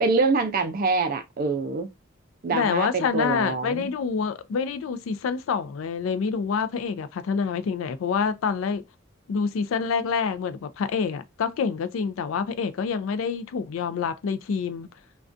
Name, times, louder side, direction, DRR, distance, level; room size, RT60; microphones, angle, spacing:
voice 1, 0.0-1.9 2.4-3.9, right 3 dB, 45° right, 0.4 m, -25 dB
voice 2, 2.5-8.8 9.3-14.9, left 6 dB, 70° left, 0.3 m, -27 dB
2.4 x 2.2 x 2.5 m
head